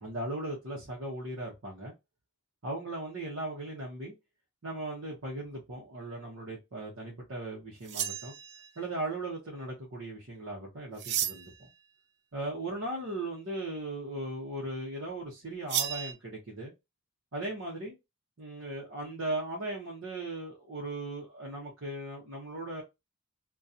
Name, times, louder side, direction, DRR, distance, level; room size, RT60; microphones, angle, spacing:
voice 1, 0.0-1.9 2.6-4.1 4.6-8.3 8.8-11.7 12.3-16.7 17.3-18.0 18.4-22.8, right 2 dB, 65° right, 0.8 m, -38 dB
sound 1, 7.8-8.8 11.0-11.6 15.7-16.1, right 9 dB, 50° right, 0.3 m, -33 dB
2.7 x 2.3 x 2.4 m
head